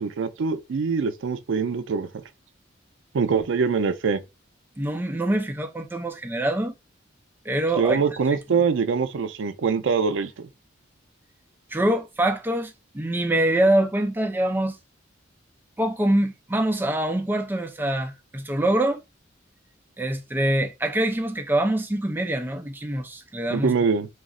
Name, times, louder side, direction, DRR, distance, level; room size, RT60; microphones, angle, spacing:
voice 1, 0.0-2.1 3.1-4.2 7.8-10.5 23.5-24.1, right 5 dB, 75° right, 0.4 m, -24 dB
voice 2, 4.8-6.7 7.5-8.0 8.3-8.4 11.7-14.8 15.8-19.0 20.0-23.7, right 1 dB, 10° right, 0.4 m, -24 dB
2.3 x 2.0 x 3.6 m
head